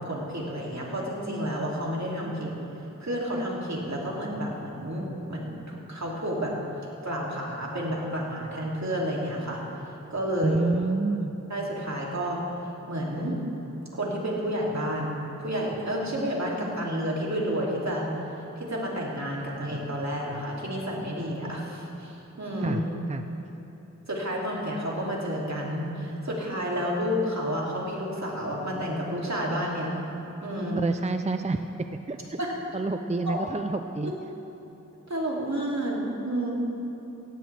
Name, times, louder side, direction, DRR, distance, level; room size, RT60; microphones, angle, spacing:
voice 1, 0.0-2.5 3.0-6.5 7.0-9.6 10.1-10.5 11.5-12.4 12.9-13.4 13.9-18.1 18.6-22.8 24.1-30.0 30.4-30.9 32.4-32.5 33.2-33.4 34.0-34.1 35.1-36.5, equal, 60° right, -4 dB, 3.0 m, -30 dB
voice 2, 10.4-11.3 22.6-22.8 23.1-23.2 30.8-31.6 32.1-32.4 32.7-34.1, right 3 dB, 20° right, 7 dB, 0.5 m, -28 dB
18.0 x 15.5 x 3.5 m, 3.0 s
wide cardioid pair, 40°, 31 cm